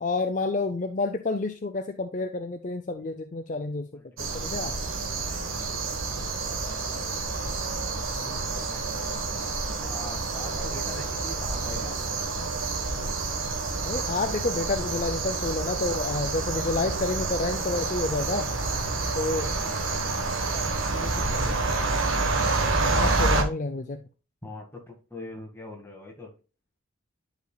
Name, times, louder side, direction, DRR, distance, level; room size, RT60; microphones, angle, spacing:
voice 1, 0.0-3.9 4.2-4.7 13.8-18.5 19.2-19.5 22.9-24.0, left 3 dB, 40° left, 7 dB, 0.5 m, -29 dB
voice 2, 3.9-6.0 6.4-7.5 8.2-9.5 9.8-12.1 18.1-21.6 24.4-26.3, left 1 dB, 10° left, 0 dB, 1.8 m, -44 dB
sound 1, 4.2-23.4, right 3 dB, 80° right, 1.3 m, -28 dB
11.0 x 5.1 x 2.3 m, 0.33 s
head